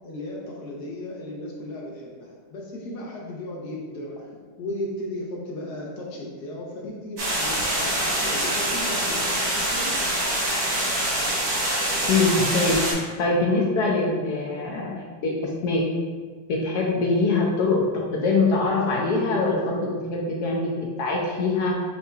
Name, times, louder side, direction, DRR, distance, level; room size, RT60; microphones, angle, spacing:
voice 1, 0.0-4.3 4.6-10.1, left 1 dB, 60° left, -2 dB, 1.3 m, -35 dB
sound 1, 7.2-12.9, right 1 dB, 85° right, 2.4 m, -25 dB
voice 2, 12.1-15.8 16.5-21.8, left 3 dB, 75° left, -1 dB, 0.9 m, -23 dB
7.9 x 2.9 x 2.4 m, 1.5 s
omnidirectional pair, 2.3 m